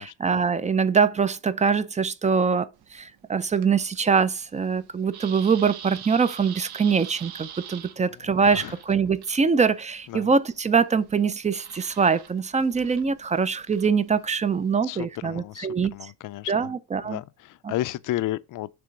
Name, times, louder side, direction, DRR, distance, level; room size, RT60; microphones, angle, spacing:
voice 1, 0.0-15.9 16.5-17.2 17.6-17.7, right 5 dB, 20° right, 0.3 m, -23 dB
sound 1, 2.7-14.7, right 9 dB, 75° right, 1.0 m, -45 dB
voice 2, 8.2-8.8 10.1-10.3 14.8-16.7 17.0-18.7, left 15 dB, 55° left, 0.5 m, -33 dB
6.8 x 3.3 x 6.2 m
cardioid pair, 160°, 39 cm